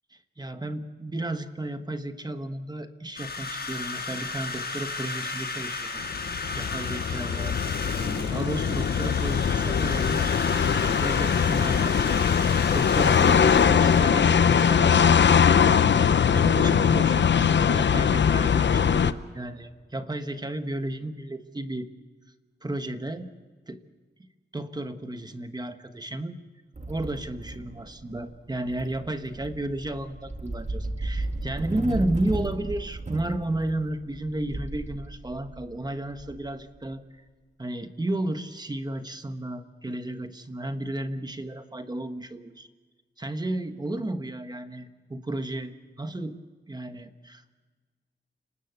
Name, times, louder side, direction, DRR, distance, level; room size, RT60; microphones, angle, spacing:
voice 1, 0.4-7.6 7.9-21.9 22.6-23.3 23.7-23.8 24.5-26.4 26.9-37.0 37.6-42.7 43.2-46.4 46.7-47.5, right 1 dB, 20° right, 8 dB, 1.2 m, -33 dB
sound 1, 3.2-14.8, left 4 dB, 55° left, 6.6 m, -34 dB
sound 2, 6.0-19.1, left 7 dB, 70° left, 0.8 m, -21 dB
sound 3, 26.7-36.9, right 2 dB, 35° right, 2.0 m, -35 dB
29.5 x 19.5 x 8.1 m, 1.4 s
wide cardioid pair, 125°, 19 cm